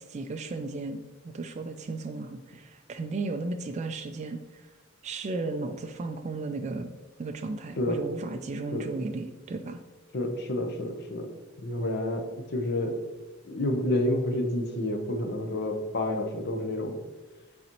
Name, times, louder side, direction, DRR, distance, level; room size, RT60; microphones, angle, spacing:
voice 1, 0.1-1.0 1.3-4.4 5.0-6.9 7.2-9.8, right 3 dB, 35° right, 6 dB, 0.3 m, -34 dB
voice 2, 10.1-11.3 11.6-13.1 13.4-17.0, left 1 dB, 55° left, 4 dB, 0.8 m, -29 dB
8.5 x 4.0 x 3.0 m, 1.2 s
head